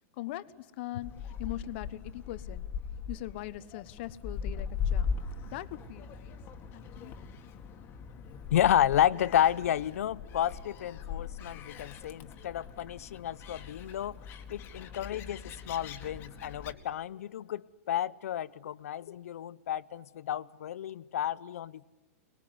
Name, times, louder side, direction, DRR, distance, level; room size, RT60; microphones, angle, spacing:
voice 1, 0.2-2.6 3.1-5.1 5.5-6.4 6.7-7.2, left 15 dB, 50° left, 14 dB, 1.2 m, -41 dB
Gull seagull, 1.0-16.7, left 6 dB, 30° left, 2.1 m, -40 dB
voice 2, 8.5-14.2 14.5-21.9, left 11 dB, 80° left, 19 dB, 0.8 m, -31 dB
24.5 x 21.5 x 9.7 m, 1.1 s
supercardioid pair, 150°, 8 cm